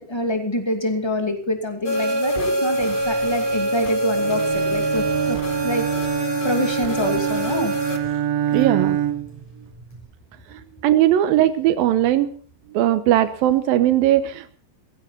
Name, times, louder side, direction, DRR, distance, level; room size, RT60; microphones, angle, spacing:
voice 1, 0.0-5.9 6.4-7.7, left 1 dB, 10° left, 4 dB, 2.0 m, -26 dB
sound 1, 1.8-8.0, equal, 25° left, 1.1 m, -25 dB
Zipper (clothing), 2.8-10.1, right 1 dB, 50° left, 8.3 m, -44 dB
Bowed string instrument, 4.2-9.4, right 10 dB, 70° right, 1.5 m, -25 dB
voice 2, 8.5-9.0 10.5-12.3 12.7-14.6, right 12 dB, 90° right, 10 dB, 2.7 m, -19 dB
17.5 x 15.5 x 4.3 m, 0.43 s
omnidirectional pair, 4.1 m